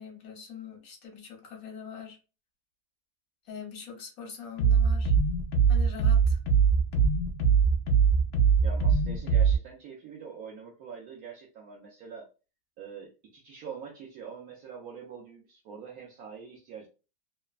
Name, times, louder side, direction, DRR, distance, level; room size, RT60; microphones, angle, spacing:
voice 1, 0.0-2.2 3.4-5.1 5.7-6.4, left 6 dB, 60° left, 1 dB, 1.1 m, -43 dB
sound 1, 4.6-9.6, right 6 dB, 80° left, 0.6 m, -22 dB
voice 2, 8.6-12.3 12.8-16.9, right 6 dB, 70° right, -1 dB, 1.0 m, -44 dB
3.1 x 2.1 x 2.3 m, 0.32 s
omnidirectional pair, 1.8 m